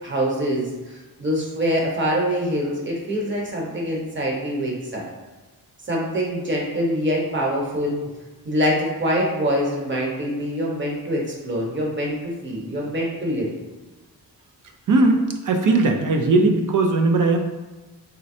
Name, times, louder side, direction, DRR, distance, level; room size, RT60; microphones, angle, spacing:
voice 1, 0.0-5.0 5.9-8.0 8.4-13.5, equal, 30° right, -2 dB, 1.1 m, -24 dB
voice 2, 14.9-17.4, right 3 dB, 55° right, 4 dB, 0.6 m, -18 dB
3.8 x 3.1 x 2.7 m, 1.2 s
cardioid pair, 95°, 37 cm